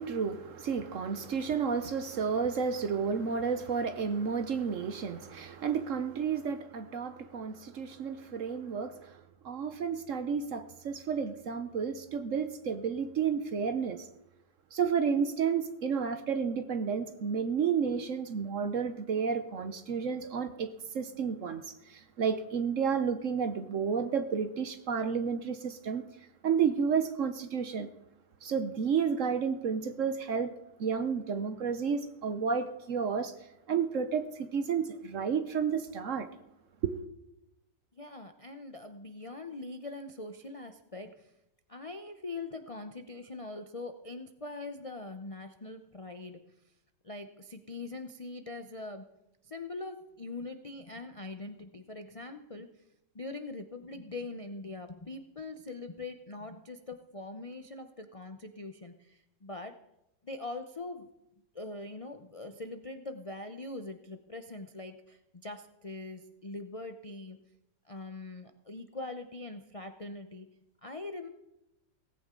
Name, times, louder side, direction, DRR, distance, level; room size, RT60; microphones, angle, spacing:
voice 1, 0.0-14.1 14.7-26.0 26.4-27.9 28.4-30.5 30.8-33.3 33.7-36.3 36.8-37.0, right 6 dB, 55° right, 1.0 m, -31 dB
voice 2, 37.9-41.3 41.7-46.4 47.0-49.1 49.4-52.7 53.1-59.8 60.2-61.1 61.5-67.4 67.9-70.5 70.8-71.3, left 2 dB, 45° left, 0.4 m, -42 dB
17.5 x 15.5 x 3.8 m
omnidirectional pair, 1.8 m